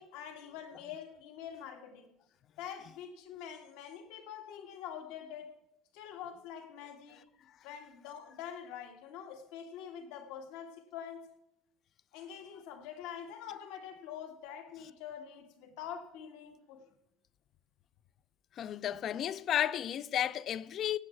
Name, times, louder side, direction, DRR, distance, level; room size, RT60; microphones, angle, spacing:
voice 1, 0.0-2.1 2.6-5.5 5.9-7.2 7.6-11.2 12.1-16.8, left 8 dB, 85° left, 1.9 m, -45 dB
voice 2, 18.6-21.0, left 10 dB, 40° left, 0.5 m, -33 dB
17.5 x 7.4 x 4.6 m
cardioid pair, 150°, 0 cm